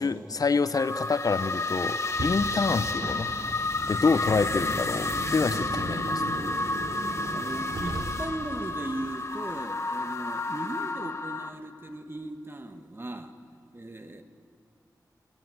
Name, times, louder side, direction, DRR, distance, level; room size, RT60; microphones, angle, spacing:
voice 1, 0.0-3.3 3.9-6.4, left 4 dB, 60° left, 13 dB, 0.7 m, -27 dB
sound 1, 0.7-11.5, left 2 dB, 40° left, 1.3 m, -31 dB
Car, 2.0-8.5, right 1 dB, 85° right, 3.1 m, -37 dB
voice 2, 7.3-13.3 13.7-14.2, right 1 dB, 35° right, 7 dB, 1.5 m, -37 dB
22.0 x 17.0 x 7.8 m, 2.4 s
cardioid pair, 55°, 7 cm